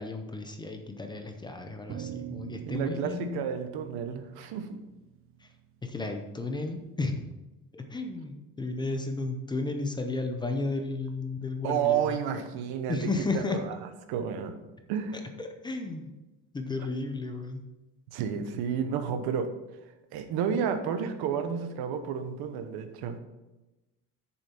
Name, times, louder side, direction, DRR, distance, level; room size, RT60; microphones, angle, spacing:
voice 1, 0.0-3.4 5.4-5.5 5.8-7.2 7.7-12.2 12.9-13.6 15.1-16.1 16.5-17.6, left 3 dB, 10° left, 5 dB, 0.6 m, -33 dB
sound 1, 1.9-6.4, right 10 dB, 35° right, 0.5 m, -44 dB
voice 2, 2.7-4.8 11.6-13.1 13.3-13.7 14.1-14.6 14.9-15.2 18.1-19.5 20.1-23.2, right 7 dB, 85° right, 7 dB, 1.2 m, -31 dB
8.9 x 7.0 x 4.4 m, 1.0 s
cardioid pair, 175°, 37 cm